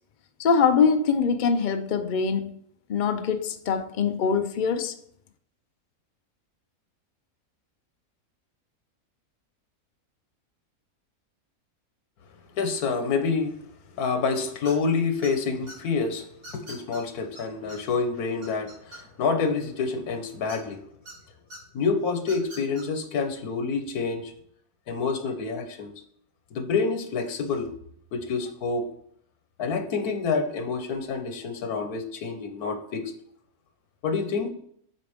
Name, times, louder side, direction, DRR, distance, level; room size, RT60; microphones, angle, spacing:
voice 1, 0.4-2.5 2.9-5.0, left 6 dB, 55° left, 0.5 m, -23 dB
voice 2, 12.6-13.5 14.0-16.3 16.5-20.8 21.7-24.3 24.9-25.9 26.5-27.7 28.1-28.9 29.6-33.1 34.0-34.5, left 4 dB, 85° left, 1.4 m, -27 dB
sound 1, 14.6-14.9 15.2-15.7 16.4-17.0 17.3-17.4 17.7-17.8 18.1-19.3 20.5-21.1 21.5-21.6 22.2-22.8, right 1 dB, 70° right, 3.6 m, -43 dB
8.2 x 5.1 x 3.5 m
omnidirectional pair, 1.5 m